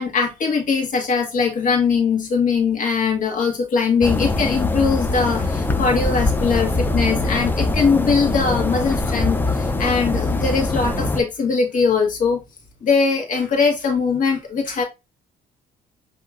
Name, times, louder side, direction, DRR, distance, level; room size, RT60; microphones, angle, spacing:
voice 1, 0.0-12.4 12.8-14.8, left 5 dB, 50° left, 1.4 m, -21 dB
sound 1, 4.0-11.2, left 2 dB, 10° left, 0.5 m, -22 dB
7.0 x 2.8 x 2.4 m
cardioid pair, 110°, 17 cm